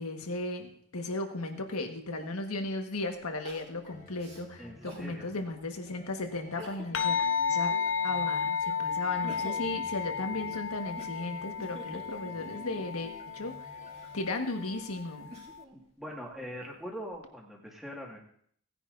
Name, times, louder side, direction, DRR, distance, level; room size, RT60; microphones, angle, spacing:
voice 1, 0.0-7.7 8.0-13.8 14.1-15.3, left 2 dB, 80° left, 4 dB, 1.5 m, -36 dB
Crying sobbing, 3.4-5.1 5.6-5.7 6.4-7.1 7.5-8.5 9.0-13.0 13.7-15.8 16.3-17.1, equal, 30° right, 2.4 m, -49 dB
sound 1, 3.6-14.3, left 1 dB, 35° left, 1.2 m, -52 dB
voice 2, 4.6-5.3 15.7-18.2, equal, ahead, -2 dB, 1.8 m, -42 dB
sound 2, 6.9-15.6, left 6 dB, 60° left, 0.6 m, -33 dB
18.0 x 10.0 x 2.6 m, 0.63 s
head